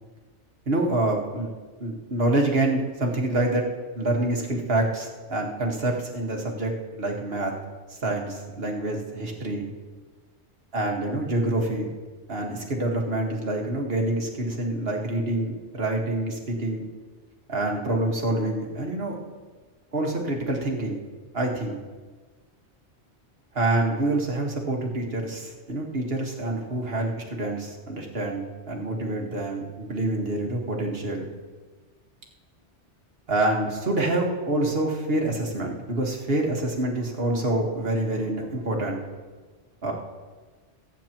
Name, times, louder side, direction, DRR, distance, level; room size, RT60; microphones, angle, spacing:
voice 1, 0.7-1.5 1.8-3.6 3.9-6.7 7.0-7.5 7.9-9.7 10.7-11.9 12.3-16.8 17.5-19.2 19.9-21.0 21.3-21.8 23.5-31.2 33.3-39.0 39.8-39.9, right 2 dB, 60° right, 0 dB, 1.9 m, -26 dB
23.5 x 9.1 x 3.0 m, 1.4 s
omnidirectional pair, 1.2 m